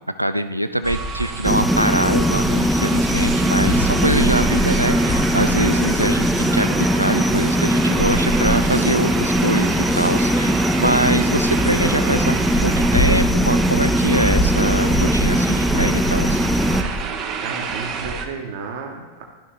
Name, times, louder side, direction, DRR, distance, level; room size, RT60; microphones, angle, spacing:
voice 1, 0.2-16.4, right 1 dB, 90° right, 11 dB, 0.4 m, -23 dB
sound 1, 0.8-18.3, right 6 dB, 35° right, 0.8 m, -29 dB
sound 2, 1.1-17.0, equal, 20° left, 0.9 m, -27 dB
sound 3, 1.4-16.8, equal, ahead, 0.4 m, -20 dB
voice 2, 17.4-19.2, right 4 dB, 50° right, 2 dB, 1.4 m, -32 dB
12.5 x 5.6 x 3.3 m, 1.2 s
figure-of-eight pair, 90°, 0 cm